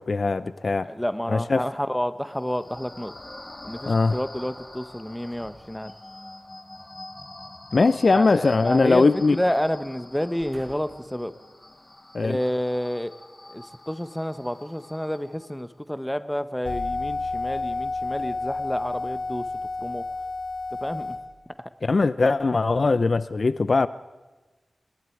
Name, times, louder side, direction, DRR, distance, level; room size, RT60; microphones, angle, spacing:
voice 1, 0.0-0.9 1.3-1.7 3.9-4.2 7.7-9.4 12.1-12.4 21.8-23.9, left 3 dB, 60° left, 15 dB, 0.6 m, -21 dB
voice 2, 0.9-3.1 3.6-5.9 8.1-9.1 9.3-11.3 12.2-13.1 13.5-19.5 19.8-20.0 20.8-21.2 21.6-21.7, equal, 5° left, 11 dB, 1.3 m, -29 dB
sound 1, 2.3-15.7, left 1 dB, 30° left, 2.6 m, -44 dB
sound 2, 5.3-6.4 7.9-9.1 9.4-9.6 10.2-11.1 11.8-11.9, right 2 dB, 55° right, 7.7 m, -53 dB
sound 3, 16.6-21.2, left 3 dB, 90° left, 3.7 m, -30 dB
28.0 x 20.0 x 4.7 m, 1.2 s
cardioid pair, 55°, 0 cm